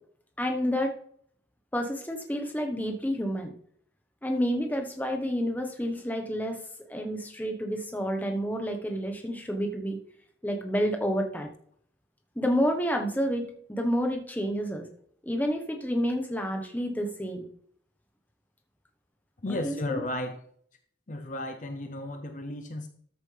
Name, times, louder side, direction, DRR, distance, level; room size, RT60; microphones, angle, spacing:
voice 1, 0.4-1.0 1.7-3.5 4.2-6.6 6.9-10.0 10.4-11.5 12.4-14.9 15.2-17.5 19.5-20.0, equal, 10° left, 1.1 m, -29 dB
voice 2, 19.4-20.4 21.1-22.9, left 1 dB, 40° left, 0.7 m, -34 dB
13.5 x 7.3 x 3.4 m
head